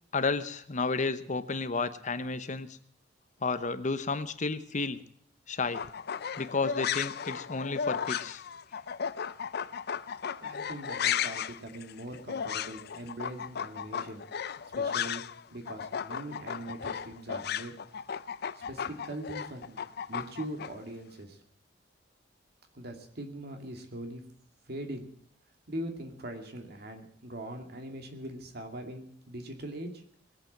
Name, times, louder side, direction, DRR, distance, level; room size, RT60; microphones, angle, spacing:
voice 1, 0.1-2.8 3.4-5.0 5.5-5.8 6.4-8.4, left 4 dB, 45° left, 12 dB, 1.0 m, -32 dB
sound 1, 5.6-15.4 15.7-20.7, left 7 dB, 60° left, 0.5 m, -35 dB
voice 2, 10.3-14.2 14.7-15.2 15.5-17.7 18.5-19.8 20.1-21.4 22.7-24.2 24.7-25.1 25.7-30.0, right 1 dB, 60° right, 4 dB, 2.4 m, -41 dB
20.0 x 8.3 x 7.4 m, 0.63 s
head